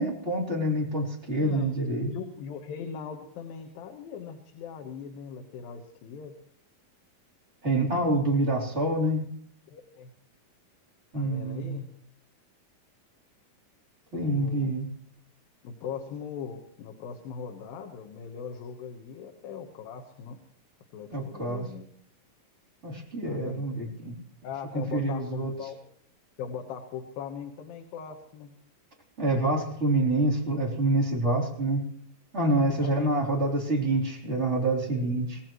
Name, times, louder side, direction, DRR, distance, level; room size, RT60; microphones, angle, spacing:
voice 1, 0.0-2.1 7.6-9.3 11.1-11.7 14.1-14.9 21.1-21.7 22.8-24.2 24.7-25.5 29.2-31.8 32.3-35.4, right 2 dB, 20° right, -3 dB, 3.6 m, -27 dB
voice 2, 1.4-1.7 2.1-6.3 9.7-10.1 11.1-11.9 14.1-14.7 15.6-20.4 20.9-21.9 23.2-23.9 24.4-25.8 26.4-28.5 32.8-33.1 34.9-35.1, left 7 dB, 85° left, 3 dB, 3.1 m, -40 dB
25.0 x 18.5 x 3.1 m, 0.62 s
omnidirectional pair, 4.0 m